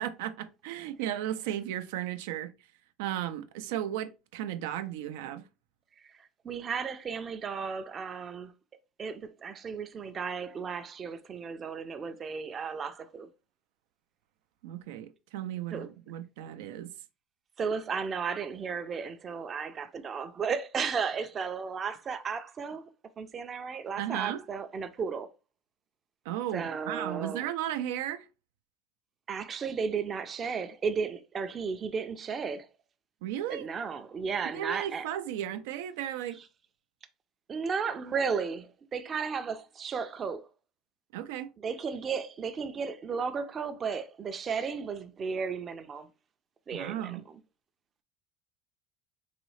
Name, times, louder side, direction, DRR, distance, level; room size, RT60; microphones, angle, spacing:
voice 1, 0.0-2.5 3.0-5.4 14.6-16.9 24.0-24.4 26.3-28.2 33.2-33.7 34.4-36.4 41.1-41.5 46.7-47.2, right 11 dB, 90° right, 0.4 m, -35 dB
voice 2, 6.2-8.5 9.0-13.3 15.7-15.9 17.6-22.8 23.2-25.3 26.5-27.4 29.3-32.7 33.5-35.1 37.5-40.5 41.6-46.1 46.7-47.4, right 5 dB, 25° right, 0.4 m, -34 dB
4.0 x 2.7 x 3.1 m
cardioid pair, 145°, 0 cm